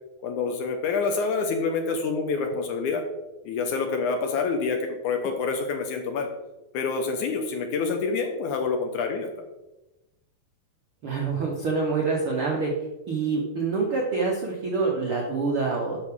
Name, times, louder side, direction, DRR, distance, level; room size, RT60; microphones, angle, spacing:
voice 1, 0.2-3.0 3.5-6.3 6.7-9.3, left 4 dB, 70° left, 5 dB, 2.1 m, -27 dB
voice 2, 11.0-12.7 13.1-16.0, right 4 dB, 70° right, -1 dB, 1.2 m, -26 dB
13.0 x 5.9 x 3.7 m, 0.99 s
omnidirectional pair, 4.3 m